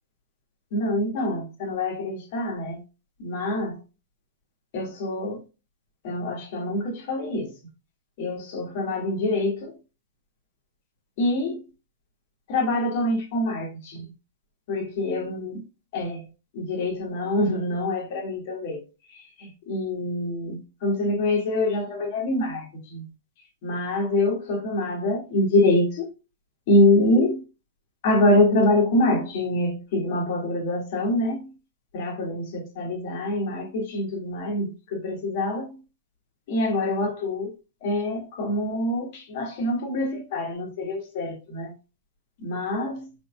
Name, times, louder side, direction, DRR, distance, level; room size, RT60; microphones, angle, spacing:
voice 1, 0.7-2.8 3.2-3.8 4.7-5.4 6.0-7.5 8.2-9.7 11.2-11.6 12.5-14.1 14.7-15.6 15.9-16.2 16.5-18.8 19.1-23.1 23.6-26.1 26.7-27.4 28.0-31.5 31.9-35.8 36.5-37.5 37.8-41.7 42.4-43.1, left 1 dB, 45° left, 1.8 m, -25 dB
5.2 x 3.6 x 2.3 m
figure-of-eight pair, 100°, 0 cm